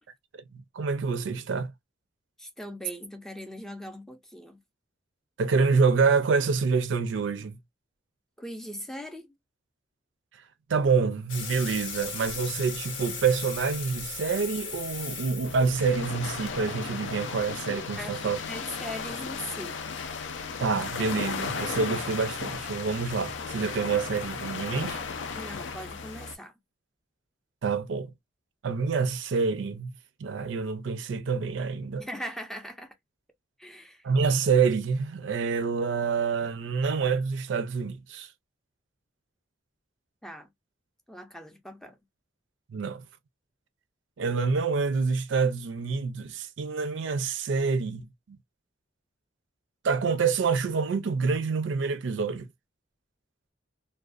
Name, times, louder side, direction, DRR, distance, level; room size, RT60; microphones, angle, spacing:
voice 1, 0.5-1.7 5.4-7.6 10.7-18.4 20.6-25.0 27.6-28.1 28.6-29.9 30.2-32.1 34.0-38.3 42.7-43.0 44.2-48.4 49.8-52.5, right 5 dB, 70° right, 0.4 m, -27 dB
voice 2, 2.4-4.6 8.4-9.3 18.0-19.8 25.3-26.5 32.0-32.9 33.6-34.0 40.2-40.5 41.1-42.0, equal, ahead, 0.4 m, -40 dB
sound 1, 11.3-16.6, left 5 dB, 90° left, 0.9 m, -38 dB
sound 2, 15.4-26.4, left 5 dB, 70° left, 0.4 m, -35 dB
2.5 x 2.2 x 2.3 m
head